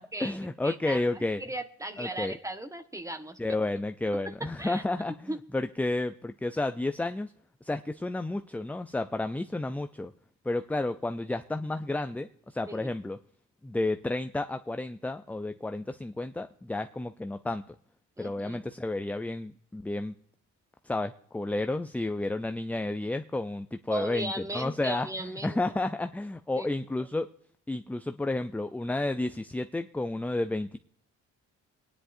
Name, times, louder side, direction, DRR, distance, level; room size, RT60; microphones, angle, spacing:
voice 1, 0.0-1.4 2.0-2.3 3.4-7.3 7.6-10.1 10.4-13.2 13.6-17.6 18.2-20.2 20.8-25.1 25.4-27.3 27.7-30.8, left 2 dB, 5° left, 9 dB, 0.4 m, -31 dB
voice 2, 0.6-3.4 4.1-4.8 5.3-5.4 12.7-12.9 18.2-18.6 23.9-25.6 26.6-26.7 27.0-27.1, right 1 dB, 10° right, 8 dB, 1.2 m, -37 dB
24.0 x 10.0 x 2.6 m, 0.66 s
cardioid pair, 90°, 30 cm